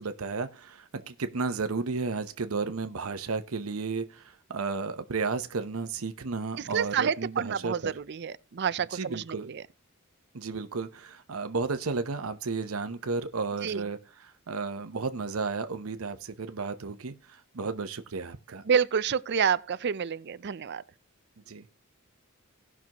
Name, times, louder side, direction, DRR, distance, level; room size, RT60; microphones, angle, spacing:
voice 1, 0.0-7.9 8.9-9.5 10.3-18.6 21.5-21.8, right 4 dB, 90° right, 0.8 m, -33 dB
voice 2, 6.6-9.6 13.6-13.8 18.6-20.8, right 7 dB, 55° right, 0.5 m, -28 dB
18.0 x 6.1 x 2.9 m
head